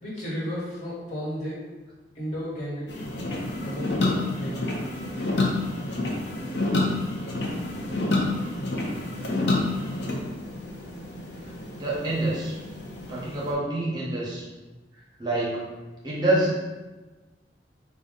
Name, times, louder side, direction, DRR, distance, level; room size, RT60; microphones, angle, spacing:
voice 1, 0.0-1.6 2.1-3.1 3.6-4.6, equal, 45° left, -7 dB, 1.5 m, -33 dB
sound 1, 2.9-13.5, left 2 dB, 70° left, 0.7 m, -29 dB
voice 2, 11.8-12.6 13.1-14.4 15.2-15.6 16.0-16.6, right 1 dB, 25° right, -5 dB, 0.7 m, -26 dB
4.1 x 2.3 x 3.6 m, 1.2 s
head